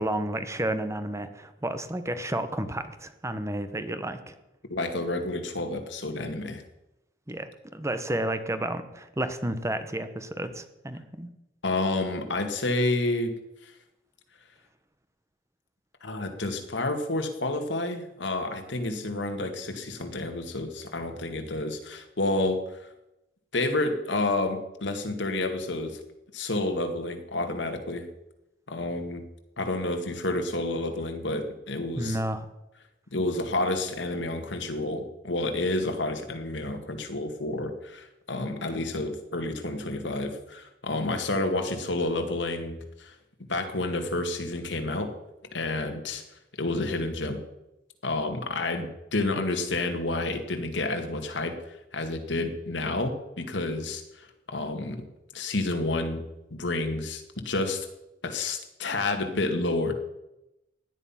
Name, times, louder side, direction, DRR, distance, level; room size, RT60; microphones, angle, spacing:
voice 1, 0.0-4.3 7.3-11.3 31.9-32.5, right 1 dB, 15° right, 10 dB, 1.0 m, -31 dB
voice 2, 4.7-6.6 11.6-13.3 13.6-13.7 16.0-22.9 23.5-26.0 26.3-28.1 28.7-29.3 29.6-32.2 33.1-43.1 43.5-45.1 45.5-46.2 46.6-47.4 48.0-51.6 51.9-55.0 55.3-56.2 56.5-57.9 58.2-59.9, left 2 dB, 80° left, 5 dB, 2.1 m, -29 dB
17.0 x 11.0 x 5.8 m, 0.91 s
head